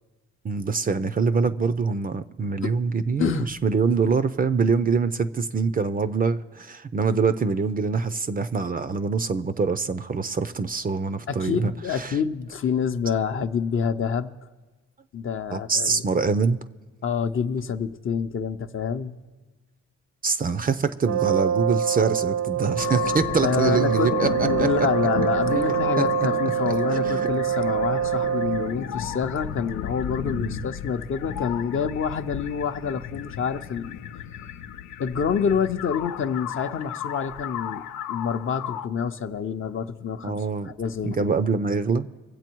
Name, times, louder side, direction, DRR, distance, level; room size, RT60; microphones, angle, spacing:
voice 1, 0.4-12.2 15.5-16.6 20.2-24.7 25.5-26.0 26.7-27.3 30.3-30.6 40.2-40.7 41.0-42.1, right 5 dB, 30° right, 13 dB, 0.5 m, -25 dB
voice 2, 3.2-3.5 11.3-14.3 15.1-16.0 17.0-19.2 23.4-34.0 35.0-41.3, left 6 dB, 45° left, 8 dB, 0.7 m, -27 dB
Brass instrument, 21.0-28.8, right 9 dB, 60° right, 0.8 m, -25 dB
sound 1, 22.8-38.9, left 10 dB, 85° left, 0.6 m, -33 dB
23.5 x 7.9 x 4.5 m, 1.3 s
cardioid pair, 90°, 30 cm